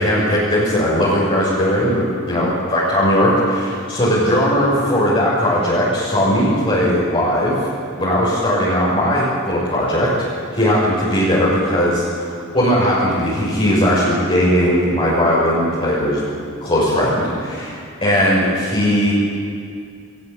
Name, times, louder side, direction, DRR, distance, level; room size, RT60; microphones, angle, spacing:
voice 1, 0.0-7.6 8.0-10.1 10.5-12.2 12.5-16.2 16.6-19.1, equal, 25° left, -8 dB, 6.6 m, -18 dB
22.0 x 19.0 x 8.9 m, 2.3 s
head